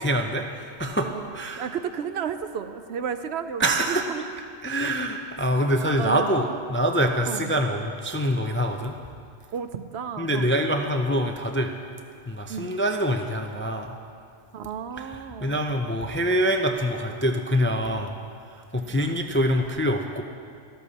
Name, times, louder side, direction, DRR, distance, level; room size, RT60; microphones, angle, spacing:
voice 1, 0.0-1.1 1.3-1.6 3.6-4.0 4.6-9.0 10.2-11.7 12.3-13.9 15.0-15.1 15.4-18.2 18.7-20.2, equal, 20° left, 4 dB, 0.3 m, -25 dB
voice 2, 1.0-4.2 6.0-6.6 7.2-7.5 9.5-10.5 12.5-12.8 14.5-15.6 18.7-19.1, right 7 dB, 70° right, 10 dB, 0.9 m, -33 dB
13.5 x 12.5 x 4.2 m, 2.4 s
omnidirectional pair, 1.1 m